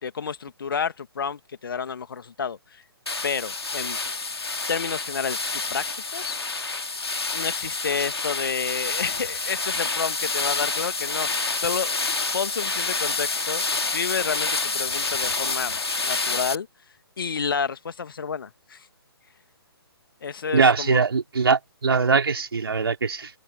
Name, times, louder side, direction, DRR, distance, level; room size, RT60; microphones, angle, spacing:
voice 1, 0.0-2.8 3.2-4.0 4.7-5.4 5.7-6.4 7.3-11.9 12.3-16.7 17.2-18.9 20.2-21.0, left 6 dB, 55° left, 2.1 m, -30 dB
sound 1, 3.1-16.6, left 3 dB, 75° left, 2.1 m, -28 dB
voice 2, 20.5-23.3, right 5 dB, 65° right, 3.2 m, -21 dB
figure-of-eight pair, 135°, 13 cm